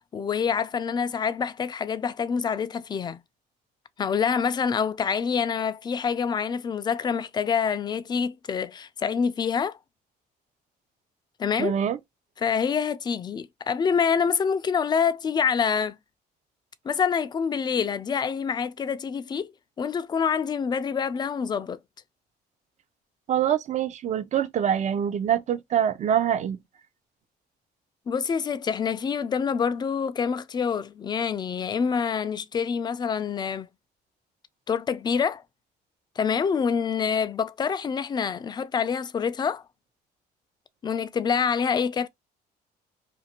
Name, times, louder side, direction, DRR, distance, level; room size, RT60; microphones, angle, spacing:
voice 1, 0.1-3.2 4.0-9.8 11.4-11.8 12.4-16.0 16.8-19.5 19.8-21.8 28.1-33.7 34.7-35.4 36.2-39.6 40.8-42.1, left 6 dB, 25° left, 0.3 m, -26 dB
voice 2, 11.6-12.0 23.3-26.6, right 9 dB, 45° right, 0.5 m, -25 dB
2.5 x 2.5 x 2.8 m
cardioid pair, 110°, 17 cm